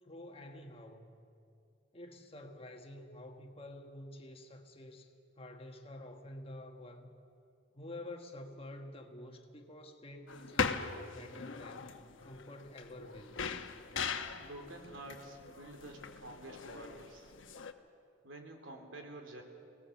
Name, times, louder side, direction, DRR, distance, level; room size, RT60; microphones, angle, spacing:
voice 1, 0.0-1.2 1.9-7.1 7.7-11.9 12.2-13.3, left 1 dB, 30° left, 4 dB, 1.4 m, -49 dB
sound 1, 10.3-17.7, left 5 dB, 90° left, 1.0 m, -40 dB
voice 2, 14.4-17.3 18.2-19.4, right 1 dB, 85° right, 3 dB, 3.1 m, -49 dB
24.0 x 18.0 x 7.2 m, 2.5 s
head